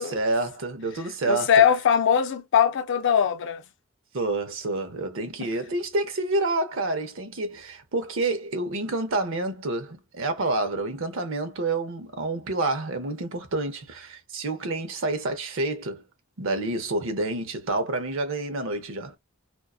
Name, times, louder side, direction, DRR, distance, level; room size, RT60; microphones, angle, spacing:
voice 1, 0.0-1.5 4.1-16.0 16.4-19.2, right 2 dB, 65° right, 0.7 m, -28 dB
voice 2, 1.3-3.6 5.4-5.5, left 8 dB, 60° left, 0.4 m, -21 dB
2.5 x 2.2 x 2.3 m
head